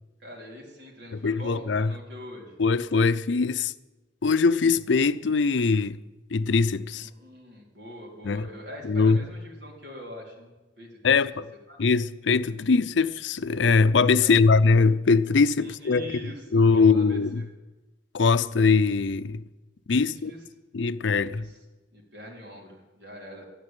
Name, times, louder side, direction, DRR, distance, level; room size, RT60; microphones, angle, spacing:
voice 1, 0.2-2.6 6.9-10.5 10.8-11.2 11.7-11.8 14.2-14.4 15.6-17.5 19.9-20.4 21.3-21.6 21.9-23.4, equal, 75° right, 3.8 m, -43 dB
voice 2, 1.1-1.9 2.6-3.7 4.2-6.0 6.3-7.1 8.2-8.5 8.8-9.2 11.0-11.5 11.8-16.1 16.5-17.4 18.1-19.4 19.9-20.3 20.7-21.5, left 4 dB, 75° left, 0.5 m, -22 dB
12.5 x 9.7 x 9.0 m
head